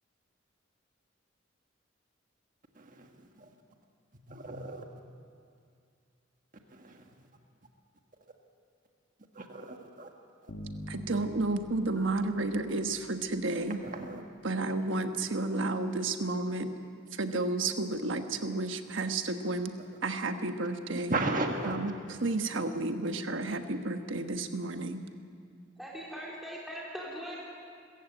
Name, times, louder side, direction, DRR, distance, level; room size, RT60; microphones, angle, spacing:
voice 1, 2.8-3.1 3.4-3.5 4.3-4.8 6.7-7.0 9.3-10.1 13.8-14.2 20.9-21.8 22.1-22.2, right 2 dB, 40° right, 3 dB, 1.5 m, -35 dB
sound 1, 10.5-13.9, equal, 65° left, 1.5 m, -45 dB
voice 2, 10.9-13.8 14.4-16.7 17.1-19.7 20.0-21.2 21.6-21.9 22.2-25.0, right 2 dB, 70° right, 7 dB, 1.3 m, -31 dB
voice 3, 25.8-27.4, equal, ahead, -5 dB, 3.3 m, -40 dB
25.0 x 14.5 x 8.1 m, 2.3 s
head